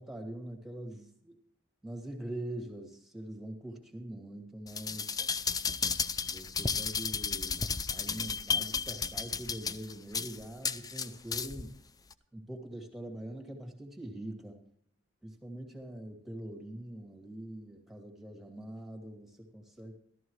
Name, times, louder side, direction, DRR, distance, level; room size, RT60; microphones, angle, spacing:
voice 1, 0.0-1.4 1.8-5.2 6.2-11.7 12.3-14.6 15.2-20.0, right 1 dB, ahead, 2 dB, 2.3 m, -43 dB
sound 1, 4.7-11.7 12.1-12.2, left 5 dB, 20° left, 0.4 m, -33 dB
14.0 x 13.5 x 3.2 m, 0.65 s
head